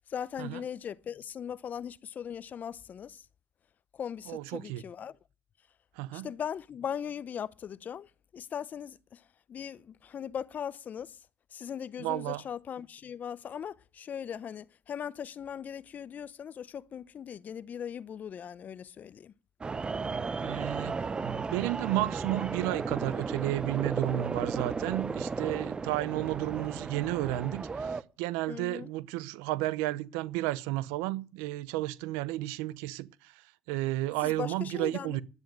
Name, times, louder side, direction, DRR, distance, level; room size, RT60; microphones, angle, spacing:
voice 1, 0.1-3.3 3.9-5.2 6.1-11.2 11.5-19.3 28.5-28.9 34.2-35.2, left 8 dB, 40° left, 0.6 m, -39 dB
voice 2, 4.3-4.8 6.0-6.3 12.0-12.4 20.4-35.2, right 16 dB, 85° right, 0.8 m, -32 dB
sound 1, 19.6-28.0, right 4 dB, 20° right, 0.7 m, -34 dB
11.0 x 9.3 x 9.2 m
cardioid pair, 105°, 4 cm